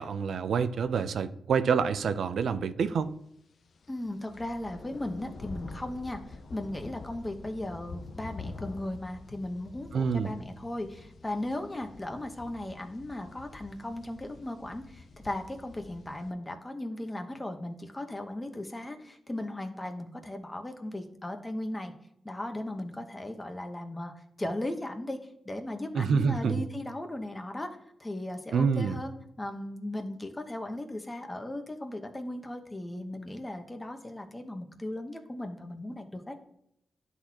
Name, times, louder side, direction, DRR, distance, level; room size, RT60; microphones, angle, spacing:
voice 1, 0.0-3.1 9.9-10.3 25.9-26.7 28.5-29.0, right 6 dB, 85° right, 0.5 m, -27 dB
sound 1, 3.6-16.3, left 3 dB, 75° left, 0.6 m, -47 dB
voice 2, 3.9-21.9 22.2-25.2 25.4-27.7 28.0-36.4, left 1 dB, 20° left, 1.1 m, -37 dB
11.5 x 4.1 x 2.9 m
cardioid pair, 80°, 0 cm